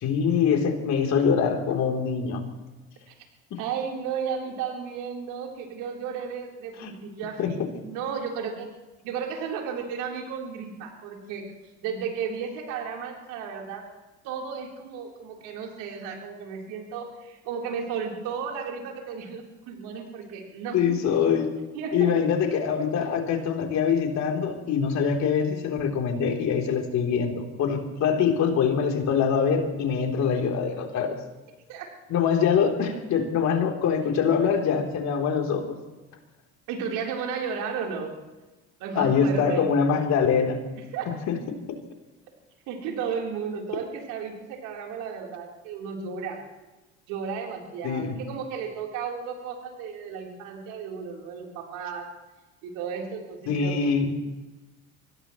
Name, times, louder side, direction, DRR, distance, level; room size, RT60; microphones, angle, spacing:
voice 1, 0.0-2.4 3.5-3.6 6.8-6.9 7.4-7.5 20.7-21.6 21.9-31.2 32.1-35.8 39.0-40.6 41.3-41.4 47.8-48.2 53.5-54.1, left 6 dB, 60° left, 2 dB, 3.5 m, -24 dB
voice 2, 3.6-8.7 9.0-11.4 11.8-13.9 14.2-20.8 21.7-22.2 23.0-23.1 31.7-31.9 36.7-38.2 38.8-39.7 40.9-41.1 42.7-46.4 47.1-52.1 52.6-53.9, right 6 dB, 75° right, 0 dB, 3.8 m, -34 dB
24.5 x 17.5 x 3.1 m, 1.1 s
hypercardioid pair, 65°, 31 cm